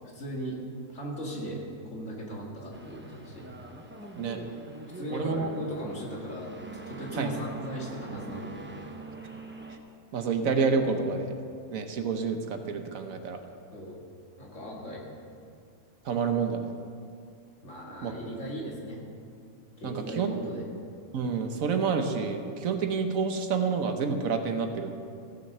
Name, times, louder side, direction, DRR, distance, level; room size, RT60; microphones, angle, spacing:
voice 1, 0.1-0.6 0.9-1.6 1.9-3.5 4.8-6.5 6.9-8.8 13.7-14.0 14.4-15.0 17.6-19.0 19.8-20.6, right 1 dB, 55° left, -3 dB, 2.5 m, -37 dB
sound 1, 2.7-9.8, right 2 dB, 10° right, 0.7 m, -43 dB
voice 2, 5.1-5.5 7.1-7.3 10.1-11.3 11.7-13.4 16.0-16.6 18.0-18.1 19.8-20.3 21.1-25.0, right 5 dB, 70° right, 6 dB, 1.3 m, -28 dB
16.0 x 6.4 x 6.6 m, 2.3 s
omnidirectional pair, 1.5 m